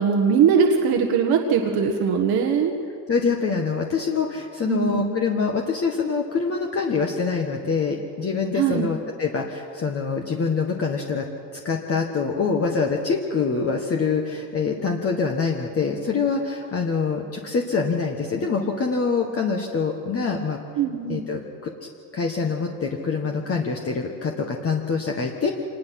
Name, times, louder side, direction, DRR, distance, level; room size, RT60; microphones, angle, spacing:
voice 1, 0.0-2.7 4.6-5.1 8.5-8.9 20.8-21.2, right 6 dB, 60° right, 2 dB, 1.6 m, -21 dB
voice 2, 3.1-11.2 11.6-20.6 21.1-25.5, left 5 dB, 35° left, 1 dB, 1.6 m, -25 dB
26.0 x 20.0 x 6.0 m, 2.4 s
cardioid pair, 120°, 41 cm